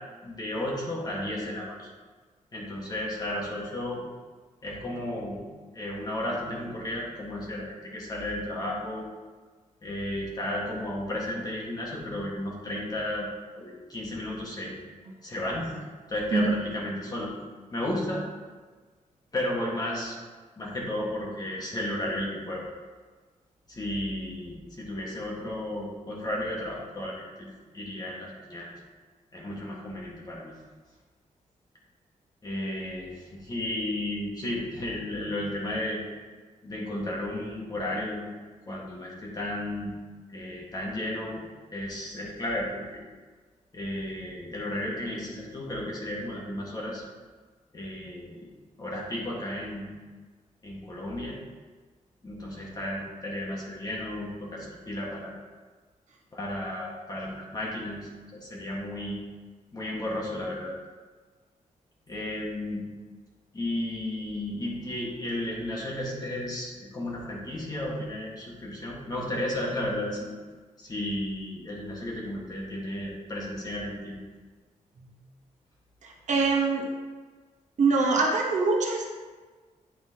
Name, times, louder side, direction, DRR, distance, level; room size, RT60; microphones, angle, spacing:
voice 1, 0.2-1.9 2.5-4.0 4.6-5.4 5.7-9.0 9.8-13.3 13.5-14.8 15.2-15.7 16.1-17.3 17.7-18.2 19.3-20.2 20.6-22.6 23.7-27.5 27.7-28.7 29.3-30.5 32.4-36.0 36.6-38.3 38.7-39.9 40.3-41.4 41.7-43.0 43.7-47.0 47.7-48.5 48.8-49.9 50.6-51.4 52.2-55.3 56.3-59.2 59.7-60.7 62.1-62.9 63.5-70.3 70.8-74.1, left 1 dB, 30° left, -4 dB, 1.6 m, -33 dB
voice 2, 76.0-76.8 77.8-79.0, right 3 dB, 60° right, 0 dB, 1.1 m, -24 dB
8.9 x 5.7 x 2.9 m, 1.4 s
wide cardioid pair, 150°, 14 cm